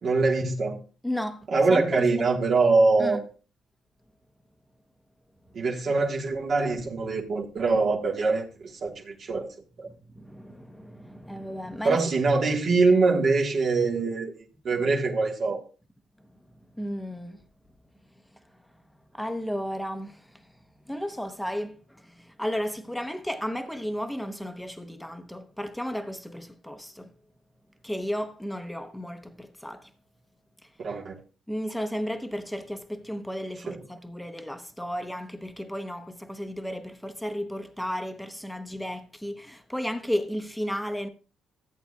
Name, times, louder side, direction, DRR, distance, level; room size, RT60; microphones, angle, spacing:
voice 1, 0.0-0.8 1.5-3.2 5.5-9.5 9.8-9.9 11.8-14.3 14.6-15.6 30.8-31.2 33.7-33.8, right 3 dB, 50° right, 1.5 m, -23 dB
voice 2, 1.0-2.0 3.0-3.2 9.9-12.0 16.7-17.4 19.1-20.4 20.9-27.1 27.8-29.9 31.5-41.1, equal, ahead, 1.0 m, -34 dB
14.0 x 8.1 x 2.4 m
cardioid pair, 105°, 0 cm